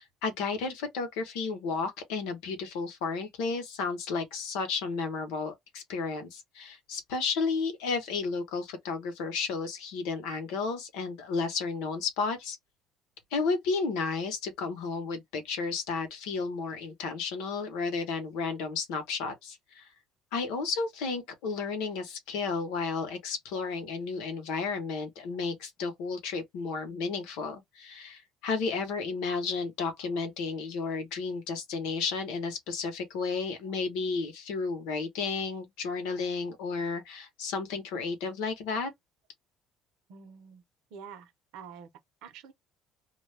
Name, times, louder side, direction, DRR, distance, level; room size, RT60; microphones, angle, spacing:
voice 1, 0.0-12.6 13.3-19.9 20.3-38.9, left 4 dB, 85° left, 0.9 m, -32 dB
voice 2, 40.1-40.6 40.9-41.9 42.2-42.5, right 6 dB, 80° right, 0.8 m, -47 dB
2.3 x 2.2 x 3.3 m
cardioid pair, 100°, 0 cm